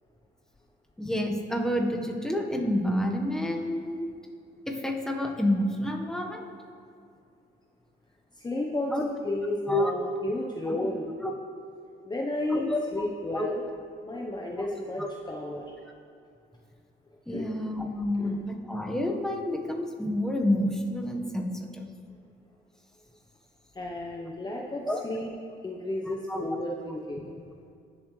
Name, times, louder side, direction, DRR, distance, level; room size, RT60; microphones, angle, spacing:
voice 1, 1.0-4.1 4.7-6.4 8.9-9.0 9.7-9.9 10.7-10.8 11.2-11.3 12.5-12.8 13.3-13.5 15.0-15.1 17.3-21.8 24.9-25.0 26.3-26.4, left 1 dB, 5° left, 1 dB, 1.4 m, -29 dB
voice 2, 8.4-11.1 12.0-13.6 14.0-15.6 17.3-17.7 18.2-18.4 23.7-25.3 25.6-27.3, left 1 dB, 20° left, -1 dB, 1.0 m, -33 dB
18.5 x 7.3 x 3.3 m, 2.4 s
cardioid pair, 90°, 20 cm